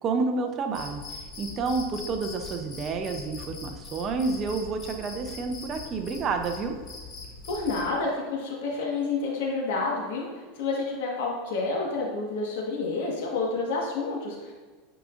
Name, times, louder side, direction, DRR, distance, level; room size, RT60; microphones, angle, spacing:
voice 1, 0.0-1.0 1.4-6.8, right 4 dB, 30° right, 6 dB, 0.7 m, -29 dB
Cricket, 0.7-7.9, left 3 dB, 30° left, 1.7 m, -42 dB
voice 2, 7.5-10.3 10.6-14.5, left 3 dB, 75° left, -2 dB, 1.6 m, -29 dB
7.8 x 5.0 x 2.6 m, 1.4 s
supercardioid pair, 140°, 0 cm